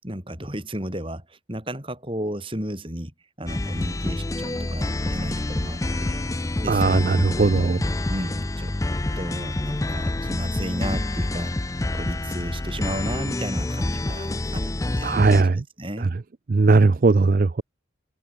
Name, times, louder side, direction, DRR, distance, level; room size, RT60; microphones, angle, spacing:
voice 1, 0.0-3.1 3.4-6.2 6.6-7.8 8.1-8.7 9.2-11.6 11.9-16.1, right 1 dB, 30° right, 5.5 m, -34 dB
sound 1, 3.5-15.4, left 2 dB, 15° left, 0.5 m, -27 dB
voice 2, 6.7-7.8 15.0-15.6 16.5-17.6, right 3 dB, 45° right, 0.5 m, -18 dB
open air
head